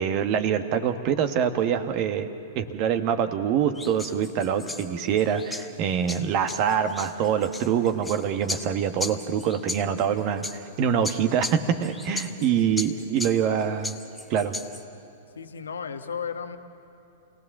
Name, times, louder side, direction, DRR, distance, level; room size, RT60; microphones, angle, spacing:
voice 1, 0.0-2.3 2.5-13.9 14.3-14.5, right 8 dB, 40° right, 8 dB, 1.4 m, -25 dB
sound 1, 3.7-14.8, left 2 dB, 5° left, 1.2 m, -38 dB
voice 2, 15.3-16.6, left 6 dB, 75° left, 8 dB, 1.2 m, -35 dB
29.0 x 18.0 x 7.3 m, 2.7 s
figure-of-eight pair, 105°, 0 cm